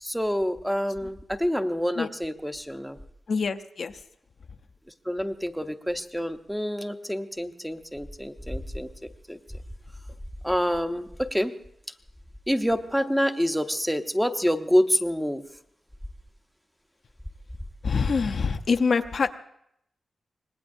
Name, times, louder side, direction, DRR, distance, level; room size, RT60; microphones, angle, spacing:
voice 1, 0.0-3.0 5.1-8.9 9.3-9.4 10.4-11.5 12.5-15.4, equal, ahead, 7 dB, 0.8 m, -27 dB
voice 2, 3.3-3.9 17.8-19.4, left 5 dB, 60° left, 8 dB, 0.6 m, -25 dB
25.0 x 19.5 x 2.6 m, 0.73 s
wide cardioid pair, 105°, 0 cm